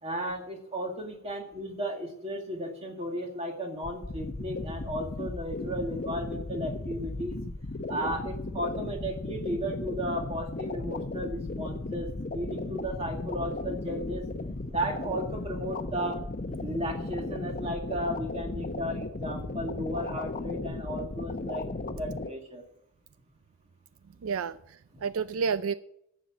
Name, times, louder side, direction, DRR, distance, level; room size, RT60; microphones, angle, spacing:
voice 1, 0.0-7.4 7.9-14.2 14.7-16.2 16.6-21.7 21.9-22.6 24.9-25.0, equal, 30° right, 2 dB, 2.1 m, -34 dB
sound 1, 3.8-22.3, left 2 dB, 40° left, 0.8 m, -36 dB
voice 2, 24.2-25.7, right 6 dB, 75° right, 14 dB, 0.4 m, -30 dB
11.0 x 7.7 x 7.4 m, 0.75 s
head